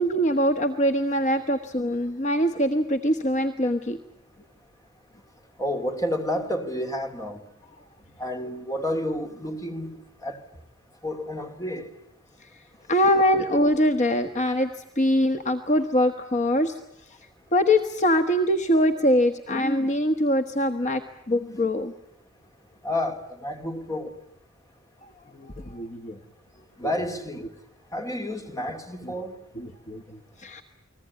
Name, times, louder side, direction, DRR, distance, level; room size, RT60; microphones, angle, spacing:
voice 1, 0.0-4.0 12.4-12.6 12.9-16.8 17.1-17.2 17.5-21.0 21.3-21.9 25.4-26.2 26.8-26.9 29.0-29.1 29.5-30.6, equal, 35° left, 1.3 m, -23 dB
voice 2, 5.6-7.4 8.2-10.4 11.0-11.9 22.8-24.2 26.8-27.5 27.9-29.4, left 1 dB, 15° left, 2.8 m, -30 dB
30.0 x 20.5 x 9.6 m
head